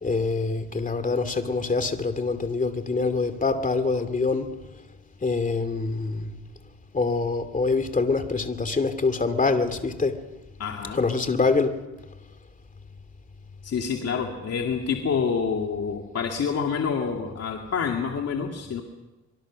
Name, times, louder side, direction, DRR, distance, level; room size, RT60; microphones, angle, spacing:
voice 1, 0.0-4.5 5.2-6.3 6.9-10.1 10.9-11.7, left 4 dB, 25° left, 2.5 m, -25 dB
voice 2, 10.6-11.0 13.6-18.8, left 6 dB, 55° left, 2.5 m, -27 dB
24.5 x 23.5 x 6.4 m
cardioid pair, 90°, 30 cm